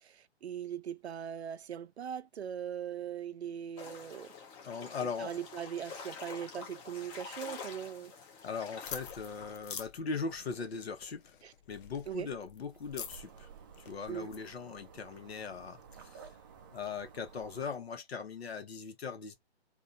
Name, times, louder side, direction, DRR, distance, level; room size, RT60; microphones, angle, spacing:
voice 1, 0.0-4.3 5.2-8.1 11.4-11.5 12.1-12.3 14.1-14.3, right 9 dB, 75° right, 0.6 m, -40 dB
sound 1, 3.8-9.6, left 5 dB, 15° left, 0.8 m, -47 dB
voice 2, 4.6-5.4 8.4-11.3 11.7-13.5 13.9-16.3 16.7-19.4, left 5 dB, 70° left, 1.3 m, -40 dB
sound 2, 8.8-14.5, left 8 dB, 50° left, 0.7 m, -47 dB
sound 3, 12.7-17.8, right 6 dB, 20° right, 0.4 m, -54 dB
3.7 x 2.7 x 2.5 m
hypercardioid pair, 140°, 32 cm